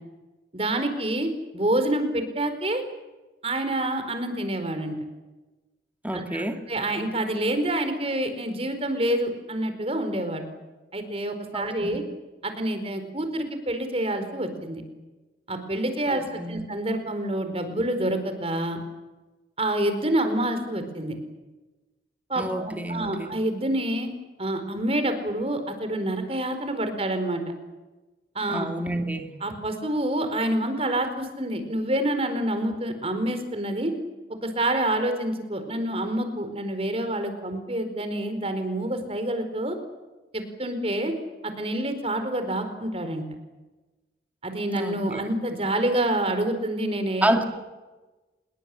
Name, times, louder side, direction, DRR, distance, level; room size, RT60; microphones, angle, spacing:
voice 1, 0.5-2.8 3.4-5.0 6.1-6.4 6.7-10.4 10.9-12.0 12.4-14.8 15.5-18.8 19.6-21.2 22.3-24.1 24.4-27.4 28.3-28.7 29.4-33.9 34.4-39.8 40.3-41.1 41.4-43.2 44.4-47.4, right 1 dB, 35° right, 8 dB, 4.6 m, -27 dB
voice 2, 6.0-6.7 11.5-12.0 16.1-16.6 22.4-23.3 28.5-29.3 44.7-45.2 47.2-47.5, right 1 dB, 10° right, 5 dB, 2.4 m, -29 dB
26.5 x 22.5 x 8.6 m, 1.1 s
head